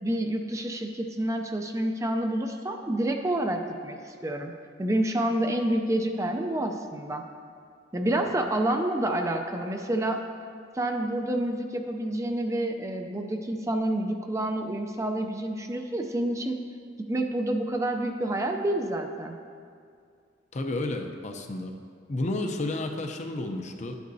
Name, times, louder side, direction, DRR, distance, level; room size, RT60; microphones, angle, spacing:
voice 1, 0.0-4.5 4.8-7.2 7.9-10.2 10.7-16.6 17.0-19.4, right 1 dB, 15° right, 4 dB, 0.4 m, -28 dB
voice 2, 20.5-21.8 22.1-24.0, left 2 dB, 40° left, 4 dB, 0.6 m, -31 dB
11.5 x 9.3 x 2.7 m, 2.3 s
head